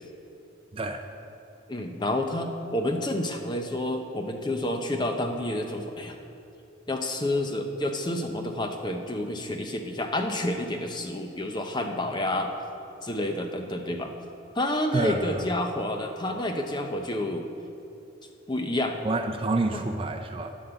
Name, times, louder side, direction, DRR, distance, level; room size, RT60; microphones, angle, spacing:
voice 1, 0.7-1.0 14.9-15.4 19.0-20.5, right 2 dB, 25° right, 6 dB, 0.4 m, -28 dB
voice 2, 1.7-6.2 6.9-12.5 13.0-14.1 14.5-17.5 18.5-19.0 19.7-19.8, left 1 dB, 20° left, 4 dB, 0.7 m, -29 dB
9.4 x 7.6 x 6.9 m, 2.6 s
head